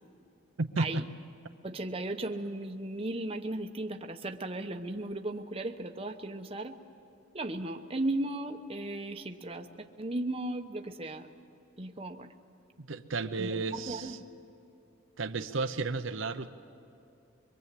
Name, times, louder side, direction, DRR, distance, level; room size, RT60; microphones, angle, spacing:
voice 1, 0.6-1.1 12.8-14.2 15.2-16.5, right 3 dB, 65° right, 7 dB, 0.8 m, -33 dB
voice 2, 1.6-6.8 7.3-11.3 11.8-12.3 13.4-14.2, right 2 dB, 30° right, 5 dB, 0.9 m, -36 dB
24.5 x 23.0 x 8.4 m, 2.8 s
head